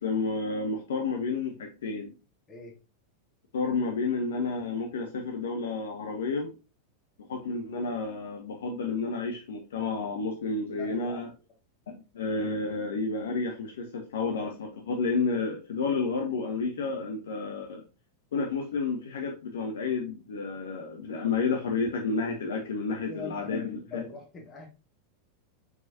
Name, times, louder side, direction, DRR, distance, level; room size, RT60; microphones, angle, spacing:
voice 1, 0.0-2.2 3.5-6.5 7.3-11.3 11.9-17.8 18.3-24.0, left 4 dB, 60° left, 0.7 m, -31 dB
voice 2, 10.8-11.3 22.9-24.7, left 3 dB, 25° left, 1.9 m, -43 dB
4.8 x 4.0 x 2.7 m
figure-of-eight pair, 90°, 0 cm